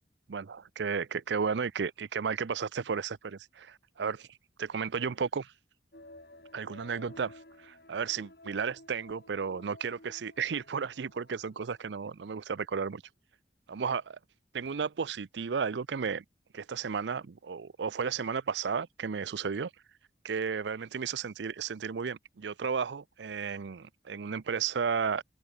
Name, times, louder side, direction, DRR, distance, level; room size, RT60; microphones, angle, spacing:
voice 1, 0.3-4.3 4.6-5.5 6.5-7.3 7.6-13.0 13.7-14.2 14.5-16.2 16.5-19.7 20.2-25.2, right 6 dB, 90° right, 0.5 m, -33 dB
sound 1, 5.9-12.1 12.5-12.6, left 1 dB, 65° left, 4.7 m, -54 dB
head